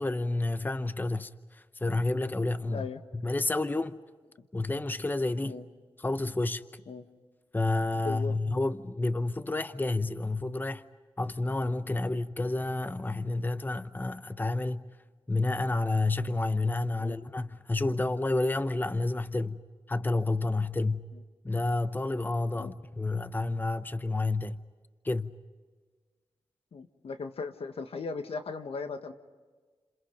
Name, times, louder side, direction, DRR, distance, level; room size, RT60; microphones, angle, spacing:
voice 1, 0.0-2.9 3.1-4.0 4.5-5.6 6.0-6.6 7.5-10.8 11.2-14.9 15.3-19.6 19.9-21.0 21.4-24.6 25.0-25.3, left 2 dB, 20° left, 0.8 m, -30 dB
voice 2, 2.7-3.0 5.4-5.6 6.9-7.0 8.0-8.4 17.0-17.2 22.6-22.7 26.7-29.1, left 4 dB, 75° left, 1.6 m, -37 dB
30.0 x 27.5 x 5.3 m
cardioid pair, 70°, 10 cm